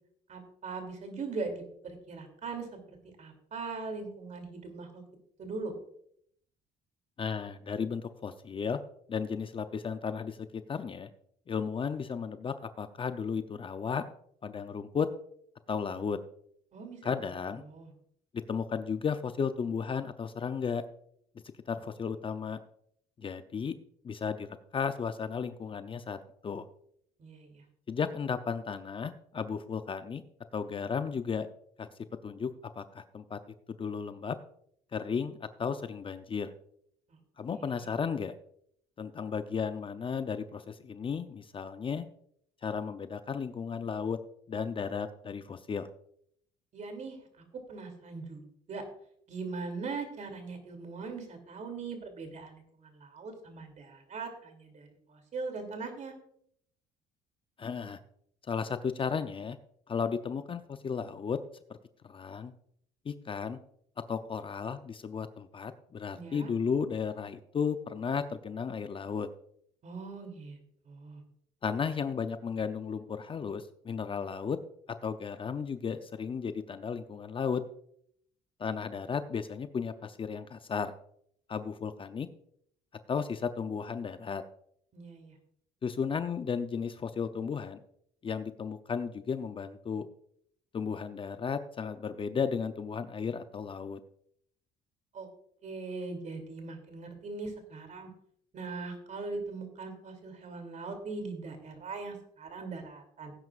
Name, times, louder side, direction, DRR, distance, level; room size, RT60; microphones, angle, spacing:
voice 1, 0.3-5.0 5.4-5.7 16.7-17.1 17.6-17.9 27.2-27.6 37.1-37.2 37.5-37.9 46.7-48.8 49.3-56.1 66.1-66.5 69.8-70.6 70.8-71.2 84.9-85.4 95.1-95.3 95.6-98.1 98.5-103.3, right 4 dB, 45° right, 5 dB, 2.9 m, -40 dB
voice 2, 7.2-8.8 9.1-10.4 10.7-11.1 11.5-14.0 14.4-15.1 15.7-16.2 17.0-17.6 18.5-20.8 21.7-22.6 23.2-23.8 24.0-26.2 26.4-26.6 27.9-30.2 30.5-31.5 31.8-31.9 32.2-32.5 32.8-33.4 33.7-34.4 34.9-36.5 37.4-38.3 39.0-42.1 42.6-44.2 44.5-45.9 57.6-58.0 58.5-59.6 59.9-61.4 62.1-62.5 63.1-63.6 64.1-69.3 71.6-74.6 75.0-77.6 78.6-80.9 81.5-82.3 83.1-84.4 85.8-87.8 88.2-90.1 90.7-94.0, left 6 dB, 30° left, 10 dB, 0.6 m, -34 dB
17.5 x 9.5 x 2.5 m, 0.68 s
cardioid pair, 110°, 17 cm